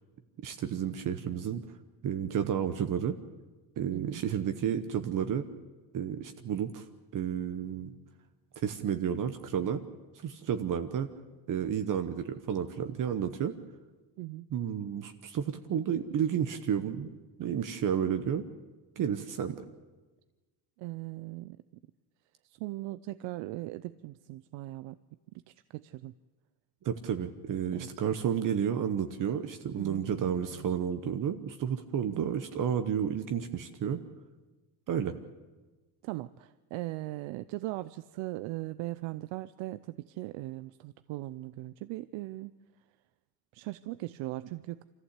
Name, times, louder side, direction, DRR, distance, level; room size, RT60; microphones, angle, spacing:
voice 1, 0.4-1.6 2.0-3.1 3.8-5.4 5.9-6.8 7.1-7.9 8.6-9.8 10.1-11.1 11.5-13.5 14.5-17.1 17.4-18.5 19.0-19.6 26.8-34.0 34.9-35.2, right 8 dB, 45° right, 8 dB, 1.0 m, -31 dB
voice 2, 3.9-4.2 14.2-14.5 20.8-21.6 22.4-25.0 25.5-26.1 27.7-27.9 29.8-30.7 36.0-42.5 43.5-44.8, right 18 dB, 85° right, 14 dB, 0.7 m, -39 dB
25.0 x 14.5 x 8.2 m, 1.2 s
cardioid pair, 145°, 44 cm